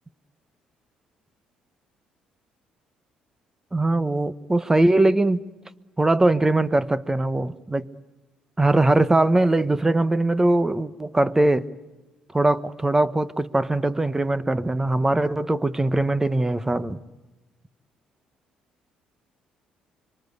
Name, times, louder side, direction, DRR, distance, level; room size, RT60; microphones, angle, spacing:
voice 1, 3.7-5.4 6.0-7.9 8.6-11.7 12.3-17.0, right 2 dB, 15° right, 1.2 m, -21 dB
26.0 x 24.5 x 8.2 m
supercardioid pair, 60°, 3 cm